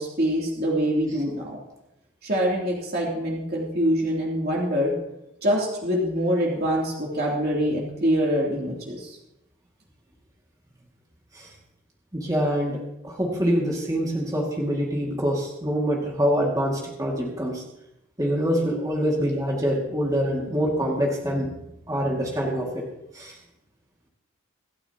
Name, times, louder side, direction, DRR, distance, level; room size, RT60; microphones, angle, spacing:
voice 1, 0.0-1.6 2.2-4.9 5.4-9.2, equal, 50° right, -3 dB, 3.1 m, -25 dB
voice 2, 12.1-17.6 18.2-22.8 23.1-23.4, equal, 15° right, -2 dB, 2.2 m, -25 dB
26.0 x 8.9 x 3.0 m, 0.84 s
head